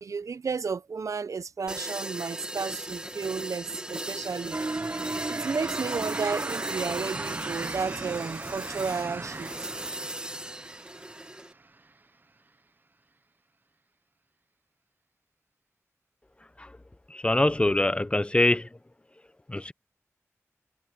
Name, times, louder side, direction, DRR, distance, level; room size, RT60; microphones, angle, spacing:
voice 1, 0.0-4.7 5.3-9.7, right 5 dB, 75° right, 0.6 m, -33 dB
sound 1, 1.7-11.5, right 1 dB, 15° right, 1.7 m, -38 dB
sound 2, 4.5-11.4, right 3 dB, 35° right, 0.8 m, -36 dB
voice 2, 17.1-18.7 19.5-19.7, left 1 dB, 20° left, 0.6 m, -24 dB
wide cardioid pair, 90°, 5 cm